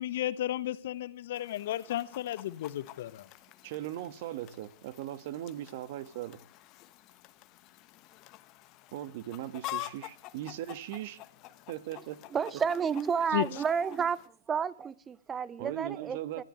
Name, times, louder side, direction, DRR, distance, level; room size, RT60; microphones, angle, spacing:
voice 1, 0.0-3.3 13.3-13.4, left 13 dB, 60° left, 1.2 m, -33 dB
Chicken rooster, 1.3-14.3, left 17 dB, 35° left, 1.2 m, -47 dB
voice 2, 3.6-6.4 8.9-11.2 11.7-12.2 15.6-16.4, right 13 dB, 50° right, 1.6 m, -39 dB
voice 3, 12.3-16.4, right 6 dB, 20° right, 0.8 m, -31 dB
28.0 x 14.5 x 3.2 m
hypercardioid pair, 110°, 0 cm